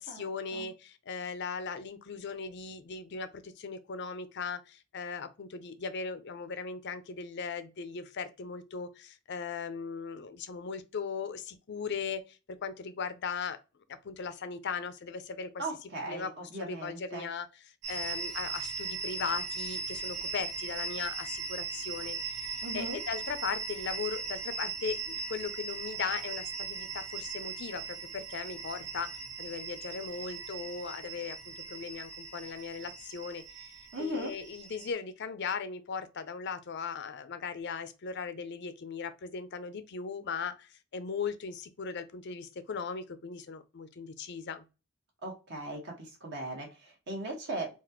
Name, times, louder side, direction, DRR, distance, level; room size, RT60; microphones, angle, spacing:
voice 1, 0.0-13.6 14.0-15.6 16.1-16.3 16.6-17.5 17.9-29.1 29.4-33.7 34.0-44.6, left 5 dB, 55° left, 0.5 m, -38 dB
voice 2, 15.6-17.3 22.6-23.0 33.9-34.3 45.2-47.7, right 1 dB, 55° right, 1.5 m, -38 dB
sound 1, 17.8-34.9, right 4 dB, 75° right, 1.1 m, -39 dB
4.0 x 2.5 x 2.9 m
head